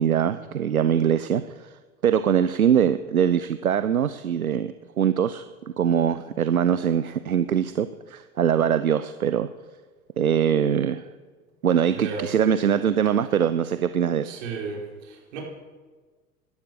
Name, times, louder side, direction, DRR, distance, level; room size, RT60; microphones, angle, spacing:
voice 1, 0.0-1.7 2.0-5.4 5.8-9.5 10.2-11.0 11.6-14.4, right 8 dB, 80° right, 12 dB, 0.7 m, -22 dB
voice 2, 11.9-12.3 14.2-15.4, right 5 dB, 60° right, -1 dB, 5.1 m, -34 dB
17.5 x 12.0 x 6.6 m, 1.4 s
figure-of-eight pair, 80°, 43 cm